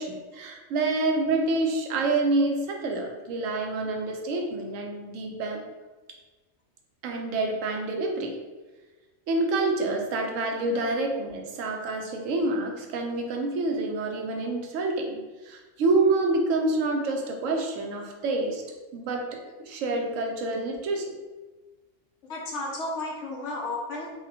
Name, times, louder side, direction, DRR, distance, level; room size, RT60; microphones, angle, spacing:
voice 1, 0.0-5.6 7.0-8.3 9.3-18.6 18.9-21.1, right 2 dB, 85° right, 2 dB, 1.0 m, -27 dB
voice 2, 22.3-24.1, left 2 dB, 70° left, -2 dB, 1.1 m, -33 dB
4.9 x 2.2 x 2.7 m, 1.2 s
omnidirectional pair, 1.3 m